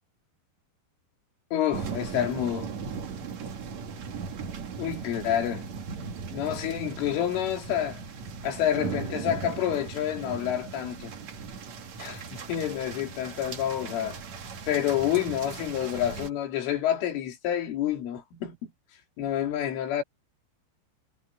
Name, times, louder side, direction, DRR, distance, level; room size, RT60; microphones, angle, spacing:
voice 1, 1.5-2.7 4.8-5.7 6.3-8.0 8.4-11.1 12.0-14.2 14.7-18.7 19.2-20.0, left 10 dB, 85° left, 5.6 m, -28 dB
sound 1, 1.7-16.3, right 5 dB, 45° right, 2.6 m, -38 dB
omnidirectional pair, 5.5 m